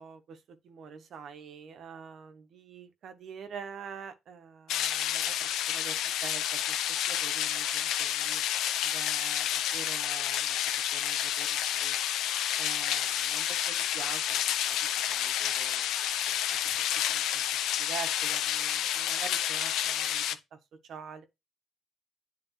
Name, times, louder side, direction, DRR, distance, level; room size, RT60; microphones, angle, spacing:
voice 1, 0.0-6.8 7.1-8.4 8.8-10.6 10.9-12.0 12.6-14.4 15.0-15.9 16.5-16.6 16.8-17.4 17.8-20.2 20.5-20.6 20.9-21.2, right 6 dB, 70° right, 1.1 m, -45 dB
sound 1, 4.7-20.3, left 11 dB, 85° left, 0.6 m, -30 dB
10.0 x 3.8 x 3.2 m
cardioid pair, 90°, 0 cm